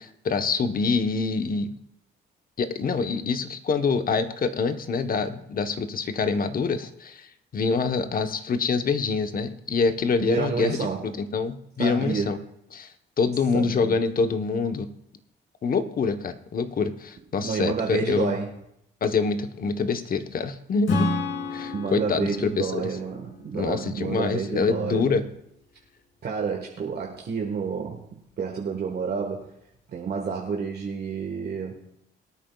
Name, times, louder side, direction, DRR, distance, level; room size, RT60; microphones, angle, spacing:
voice 1, 0.0-1.7 2.6-12.4 12.7-12.9 13.2-14.9 15.6-18.3 19.0-21.1 21.5-22.9 23.5-25.2, left 4 dB, 45° left, 8 dB, 1.0 m, -26 dB
voice 2, 10.3-11.1 11.8-12.3 13.5-14.0 17.4-18.5 21.7-25.2 26.2-28.0 28.4-29.5 29.9-31.7, right 6 dB, 55° right, 0 dB, 1.5 m, -29 dB
Acoustic guitar / Strum, 20.9-24.4, left 2 dB, 70° left, 3.3 m, -31 dB
22.5 x 9.1 x 2.4 m, 0.78 s
cardioid pair, 90°, 20 cm